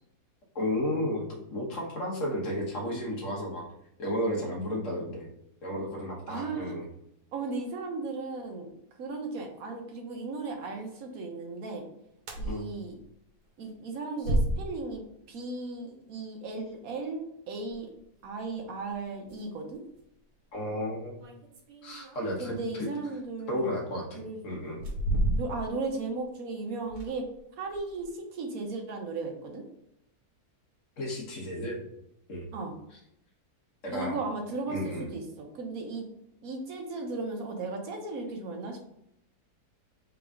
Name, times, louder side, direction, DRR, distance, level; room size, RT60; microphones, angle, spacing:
voice 1, 0.5-1.2 1.5-3.7 4.0-5.3 5.6-6.8 12.4-12.7 20.5-21.1 21.8-22.5 23.5-24.8 31.0-31.8 32.3-32.5 33.8-34.2 34.7-35.0, left 1 dB, 55° left, -2 dB, 1.6 m, -33 dB
voice 2, 6.3-6.8 7.3-8.7 9.0-11.8 12.4-12.9 13.6-17.9 18.2-19.8 22.4-23.8 24.1-24.6 25.3-27.2 27.6-29.6 32.5-32.8 33.9-36.0 36.4-38.8, right 3 dB, 65° right, 2 dB, 1.3 m, -36 dB
sound 1, 12.2-12.6 13.0-13.1 14.2-14.9 17.7-17.8 18.9-19.0 19.3-19.4 20.0-20.1 21.2-22.6 23.6-23.7 24.6-25.8 26.1-26.2 26.8-27.4 27.7-28.1, right 1 dB, 85° right, 1.5 m, -31 dB
3.9 x 3.7 x 3.6 m, 0.76 s
omnidirectional pair, 1.7 m